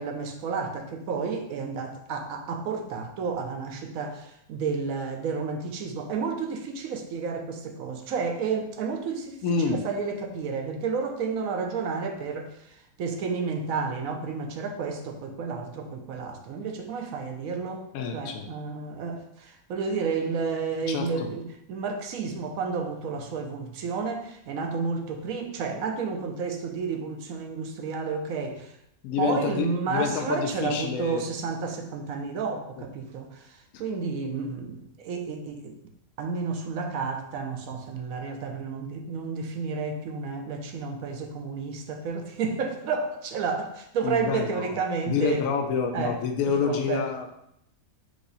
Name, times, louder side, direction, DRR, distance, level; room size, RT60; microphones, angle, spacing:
voice 1, 0.0-12.5 13.0-17.9 18.1-21.4 21.7-28.7 29.2-35.7 36.2-45.4 45.9-46.2 46.5-47.1, right 5 dB, 70° right, 4 dB, 1.0 m, -31 dB
voice 2, 9.4-9.8 17.9-18.5 20.9-21.3 29.0-31.2 44.0-44.7 45.1-47.4, left 6 dB, 70° left, 3 dB, 0.9 m, -28 dB
4.8 x 2.6 x 4.0 m, 0.76 s
omnidirectional pair, 1.7 m